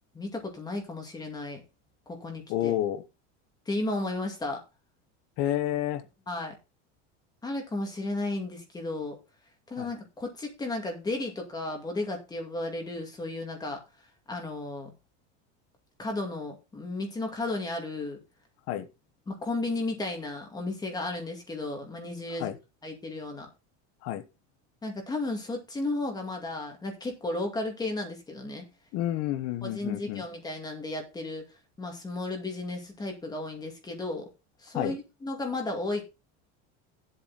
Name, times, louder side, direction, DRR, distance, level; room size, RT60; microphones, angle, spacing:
voice 1, 0.1-1.6 2.1-2.7 3.7-4.6 6.3-6.5 7.4-9.2 9.7-13.8 14.3-14.9 16.0-18.2 19.3-22.5 22.8-23.5 24.8-28.7 29.6-31.5 31.8-34.3 34.6-36.0, left 2 dB, 10° left, 2.2 m, -34 dB
voice 2, 2.5-3.0 5.4-6.0 9.8-9.9 18.7-18.9 22.4-22.5 24.0-24.2 28.9-30.2 34.7-35.0, left 12 dB, 50° left, 1.2 m, -29 dB
9.5 x 8.0 x 4.0 m
cardioid pair, 170°, 33 cm